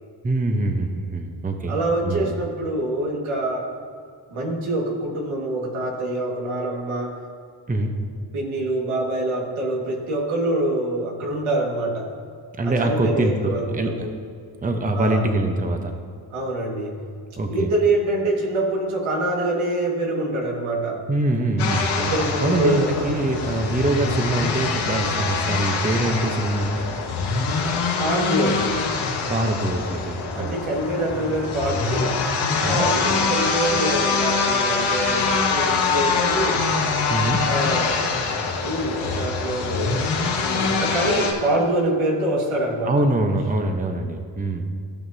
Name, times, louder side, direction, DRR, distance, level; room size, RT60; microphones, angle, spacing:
voice 1, 0.2-1.8 2.0-2.3 7.7-7.9 12.6-13.9 14.6-15.9 17.4-17.7 21.1-22.1 22.4-26.8 29.3-30.6 32.6-32.9 37.1-37.5 42.8-44.7, right 2 dB, 15° right, 5 dB, 0.9 m, -24 dB
voice 2, 1.7-3.7 4.3-7.1 8.3-12.1 12.6-14.1 14.9-15.3 16.3-17.0 17.5-21.0 21.9-23.2 24.0-24.2 28.0-28.8 30.2-32.2 32.6-36.6 37.4-38.0 38.6-42.9, right 1 dB, 85° right, -1 dB, 2.0 m, -25 dB
sound 1, 21.6-41.3, left 4 dB, 85° left, 1.6 m, -24 dB
16.0 x 5.8 x 2.8 m, 2.2 s
cardioid pair, 80°, 47 cm